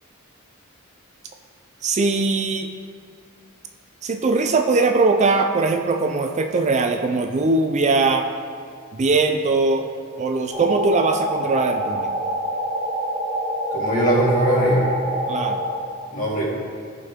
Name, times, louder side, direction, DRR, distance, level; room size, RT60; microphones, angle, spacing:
voice 1, 1.8-2.7 4.0-8.3 8.9-9.9 10.2-12.1 15.3-15.6, right 3 dB, 35° right, 5 dB, 0.4 m, -20 dB
sound 1, 10.5-15.8, right 1 dB, 15° right, 1.2 m, -26 dB
voice 2, 13.7-14.9 16.1-16.4, right 1 dB, 40° left, -5 dB, 2.3 m, -20 dB
14.5 x 5.2 x 3.6 m, 2.1 s
head